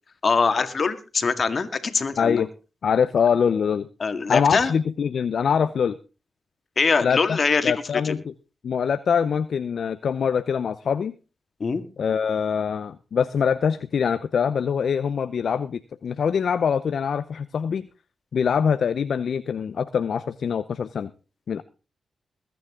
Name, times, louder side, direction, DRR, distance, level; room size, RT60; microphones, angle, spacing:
voice 1, 0.2-2.5 4.0-4.7 6.8-7.7 8.0-8.2 11.6-11.8, left 4 dB, 55° left, 9 dB, 2.1 m, -23 dB
voice 2, 2.2-2.5 2.8-3.9 4.3-6.0 7.0-7.4 7.6-8.3 8.6-11.1 12.0-17.9 18.3-21.1 21.5-21.6, left 7 dB, 70° left, 13 dB, 0.7 m, -24 dB
21.0 x 9.5 x 3.8 m, 0.33 s
supercardioid pair, 40°, 0 cm